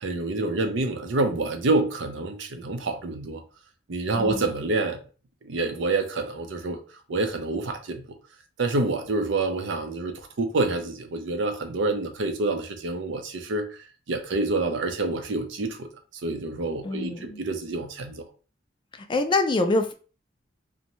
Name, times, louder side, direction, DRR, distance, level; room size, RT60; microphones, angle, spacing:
voice 1, 0.0-3.4 3.9-5.0 5.4-6.8 7.1-8.0 8.6-13.7 14.1-15.9 16.2-18.2, right 2 dB, 75° right, 0.5 m, -27 dB
voice 2, 4.2-4.5 16.8-17.4 18.9-19.9, left 2 dB, 25° left, 0.3 m, -25 dB
2.6 x 2.1 x 2.9 m
head